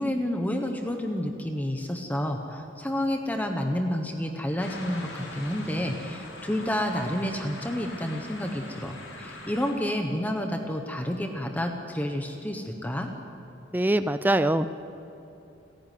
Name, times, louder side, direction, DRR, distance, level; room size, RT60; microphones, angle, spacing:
voice 1, 0.0-13.1, left 1 dB, 10° left, 4 dB, 1.2 m, -30 dB
sound 1, 4.6-9.7, left 2 dB, 85° left, 5.0 m, -42 dB
voice 2, 13.7-14.7, right 1 dB, 10° right, 12 dB, 0.4 m, -23 dB
29.5 x 10.5 x 9.3 m, 2.9 s
head